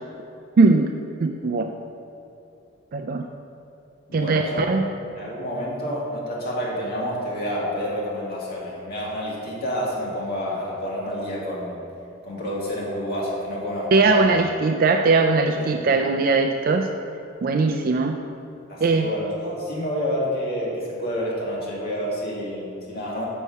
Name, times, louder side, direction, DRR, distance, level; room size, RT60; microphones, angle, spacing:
voice 1, 0.6-0.9 1.2-1.7 2.9-3.2 4.1-4.9 13.9-16.9 17.4-18.2 18.8-19.1, right 3 dB, 45° right, 4 dB, 0.4 m, -20 dB
voice 2, 4.1-4.7 5.1-11.8 12.2-14.3 15.5-15.9 18.7-23.2, equal, 50° left, -4 dB, 2.0 m, -29 dB
6.7 x 6.5 x 5.4 m, 2.7 s
head